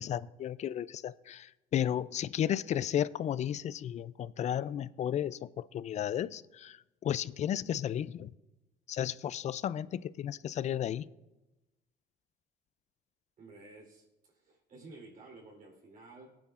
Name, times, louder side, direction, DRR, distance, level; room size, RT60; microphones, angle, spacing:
voice 1, 0.0-8.3 8.9-11.0, left 10 dB, 45° left, 0.4 m, -33 dB
voice 2, 13.4-16.3, right 3 dB, 50° right, 3.6 m, -53 dB
19.5 x 9.4 x 2.5 m
cardioid pair, 110°, 17 cm